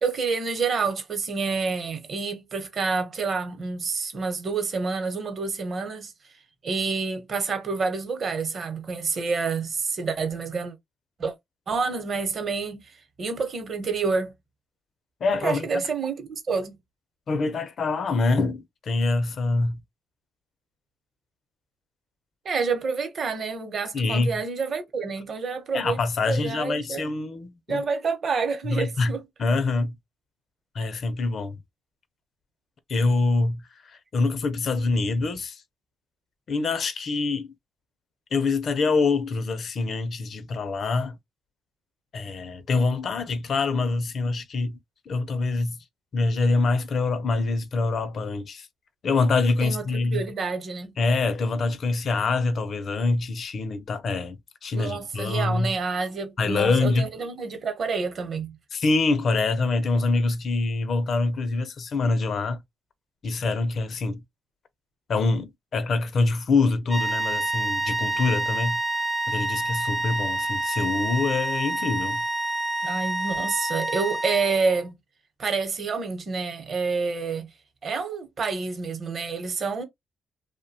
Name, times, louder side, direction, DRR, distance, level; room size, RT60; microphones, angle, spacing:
voice 1, 0.0-6.1 6.6-10.7 11.2-11.3 11.7-12.9 13.2-14.3 15.4-16.8 22.4-26.0 26.3-27.1 27.7-29.2 49.6-50.9 54.7-58.5 72.8-75.0 75.4-77.5 77.8-79.8, right 4 dB, 50° right, 0.8 m, -28 dB
voice 2, 15.2-15.9 17.3-19.8 23.9-24.4 25.7-27.8 28.6-29.1 29.4-29.9 30.7-31.6 32.9-35.6 36.5-37.5 38.3-41.2 42.1-44.8 45.1-45.8 46.1-48.7 49.0-50.2 51.0-55.7 56.4-57.1 58.7-62.6 63.2-64.2 65.1-68.8 69.3-72.2, left 3 dB, 55° left, 0.5 m, -25 dB
sound 1, 66.9-74.8, right 2 dB, 5° left, 0.5 m, -28 dB
2.7 x 2.1 x 2.6 m
cardioid pair, 90°, 0 cm